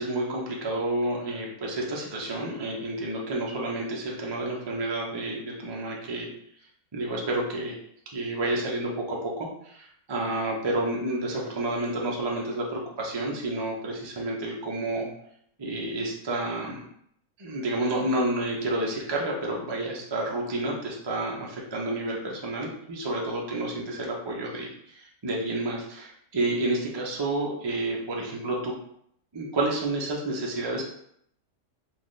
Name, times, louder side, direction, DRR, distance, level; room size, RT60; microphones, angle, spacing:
voice 1, 0.0-6.3 6.9-7.8 8.1-15.1 15.6-16.8 17.4-28.7 29.3-30.8, right 2 dB, 40° right, -2 dB, 0.3 m, -30 dB
4.1 x 2.6 x 3.1 m, 0.70 s
omnidirectional pair, 1.6 m